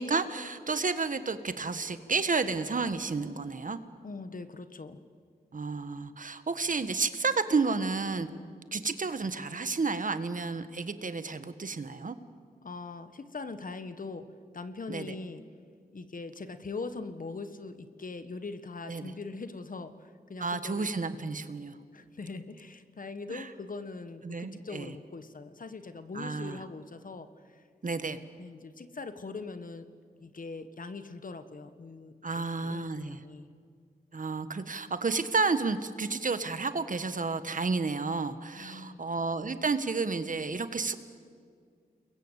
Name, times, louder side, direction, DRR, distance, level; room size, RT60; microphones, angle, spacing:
voice 1, 0.0-3.8 5.5-8.3 8.7-12.1 14.9-15.1 18.9-19.1 20.4-21.8 23.3-23.5 24.2-24.9 26.1-26.6 27.8-28.2 32.2-33.2 34.1-40.9, right 4 dB, 55° right, 11 dB, 1.6 m, -31 dB
voice 2, 4.0-5.0 12.6-14.3 14.5-15.4 15.9-20.9 21.9-27.6 28.4-29.9 30.2-33.5 38.5-39.0, left 3 dB, 60° left, 10 dB, 1.6 m, -41 dB
29.5 x 22.0 x 8.3 m, 2.1 s
cardioid pair, 60°, 16 cm